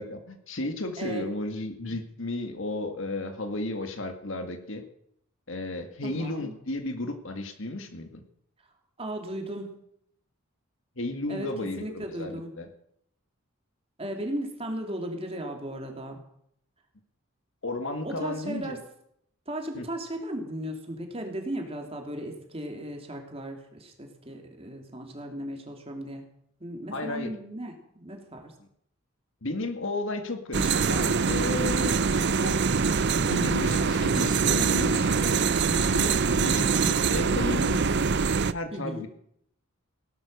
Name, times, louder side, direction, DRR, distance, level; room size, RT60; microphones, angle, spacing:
voice 1, 0.0-4.8 5.5-8.2 11.0-12.7 17.6-18.8 19.7-19.9 26.9-27.3 28.6-28.7 29.4-32.0 32.4-32.6 33.2-36.2 36.4-37.8 38.5-39.1, left 2 dB, 60° left, 7 dB, 1.9 m, -33 dB
voice 2, 6.0-6.5 9.0-9.8 11.3-11.5 11.8-12.5 14.0-16.2 18.0-18.8 19.5-26.2 26.6-28.5 36.3-36.7 38.7-39.1, right 1 dB, 25° right, 3 dB, 2.9 m, -36 dB
sound 1, 30.5-38.5, right 5 dB, 50° right, 0.6 m, -24 dB
17.0 x 12.0 x 6.6 m, 0.70 s
head